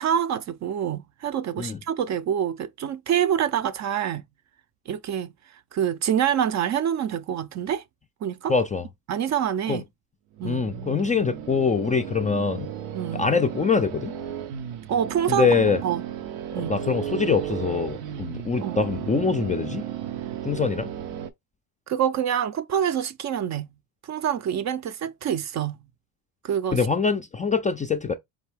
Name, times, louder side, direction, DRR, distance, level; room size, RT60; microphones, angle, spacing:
voice 1, 0.0-4.2 4.9-7.8 8.2-8.5 9.1-9.8 10.4-10.6 12.9-13.2 14.9-15.5 15.8-16.0 16.5-16.8 18.6-18.8 21.9-23.7 24.0-25.8 26.4-26.8, right 9 dB, 45° right, 0.4 m, -26 dB
voice 2, 8.5-8.9 9.7-9.8 10.4-12.7 13.1-14.1 15.3-15.8 16.6-19.8 20.4-20.9 26.7-28.1, left 5 dB, 20° left, 0.3 m, -24 dB
sound 1, 10.4-21.3, right 9 dB, 90° right, 0.6 m, -34 dB
3.7 x 2.6 x 3.3 m
supercardioid pair, 75°, 41 cm